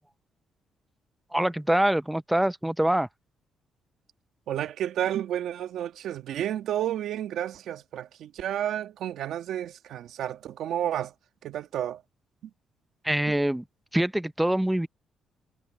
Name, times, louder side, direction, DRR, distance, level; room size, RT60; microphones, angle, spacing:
voice 1, 1.3-3.1 13.0-13.6 13.9-14.9, right 1 dB, 5° right, 0.7 m, -24 dB
voice 2, 4.5-11.1 11.4-12.0 13.3-13.4, right 11 dB, 75° right, 1.5 m, -31 dB
cardioid pair, 90°, 0 cm